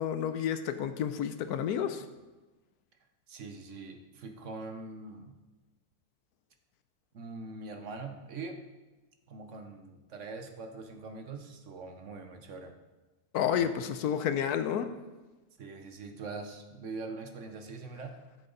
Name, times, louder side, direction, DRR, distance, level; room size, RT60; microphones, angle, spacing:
voice 1, 0.0-2.0 13.3-14.9, left 9 dB, 90° left, 10 dB, 1.2 m, -30 dB
voice 2, 3.3-5.4 7.1-8.6 9.3-12.7 15.6-18.2, right 3 dB, 55° right, 5 dB, 1.2 m, -43 dB
13.0 x 6.9 x 4.0 m, 1.2 s
omnidirectional pair, 1.6 m